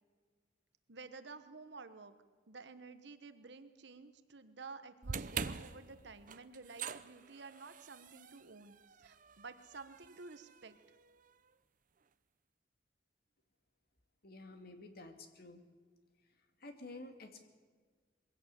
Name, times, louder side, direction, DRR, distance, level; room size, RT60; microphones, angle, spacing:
voice 1, 0.9-2.1 2.5-10.8, right 4 dB, 65° right, 10 dB, 1.1 m, -52 dB
sound 1, 5.0-11.3, right 6 dB, 45° right, 0.7 m, -45 dB
voice 2, 14.2-15.6 16.6-17.5, left 2 dB, 55° left, 6 dB, 2.3 m, -51 dB
22.5 x 16.5 x 8.4 m, 1.5 s
head